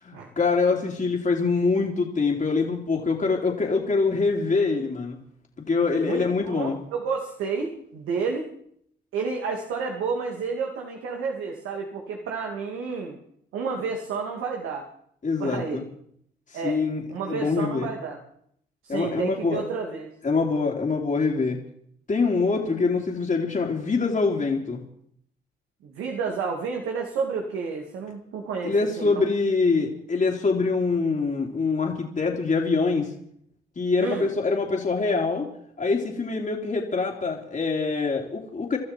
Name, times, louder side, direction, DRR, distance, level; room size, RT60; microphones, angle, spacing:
voice 1, 0.0-5.2 5.7-6.8 15.2-15.8 16.5-17.9 18.9-19.6 20.2-21.6 22.1-24.8 28.6-33.1 33.8-35.5 35.8-38.8, left 4 dB, 40° left, 0 dB, 3.1 m, -24 dB
voice 2, 6.0-8.5 9.1-13.2 13.5-14.8 15.4-15.9 16.5-16.8 17.1-18.2 18.8-20.1 25.8-29.2 34.0-34.3, right 5 dB, 80° right, 2 dB, 2.6 m, -30 dB
24.5 x 12.5 x 4.6 m, 0.68 s
supercardioid pair, 60°, 21 cm